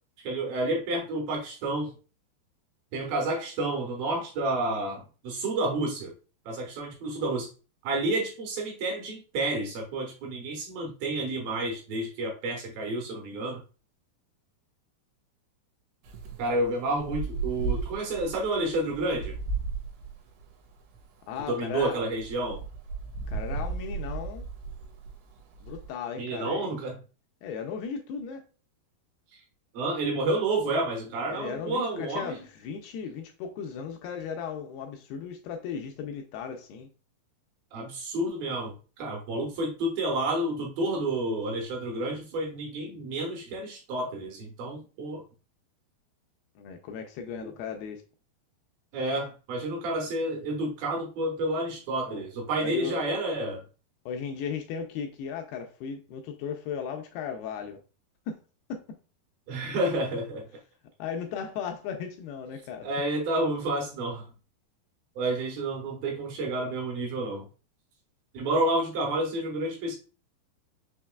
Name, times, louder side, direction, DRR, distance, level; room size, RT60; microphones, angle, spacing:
voice 1, 0.2-1.9 2.9-6.1 6.5-7.5 7.8-13.6 16.4-19.4 21.5-22.6 26.2-27.0 29.7-32.4 37.7-45.2 48.9-53.6 59.5-60.5 62.8-64.3 65.2-67.5 68.3-70.0, right 2 dB, 70° right, 2.5 m, -30 dB
Wind, 16.0-25.9, right 4 dB, 90° right, 2.9 m, -36 dB
voice 2, 21.3-22.0 23.3-24.4 25.6-26.7 27.4-28.4 31.3-36.9 46.6-48.0 52.0-52.2 52.6-53.0 54.1-57.8 58.3-58.4 58.7-58.8 61.0-62.9, left 6 dB, 80° left, 2.3 m, -36 dB
6.3 x 2.9 x 2.3 m
omnidirectional pair, 4.8 m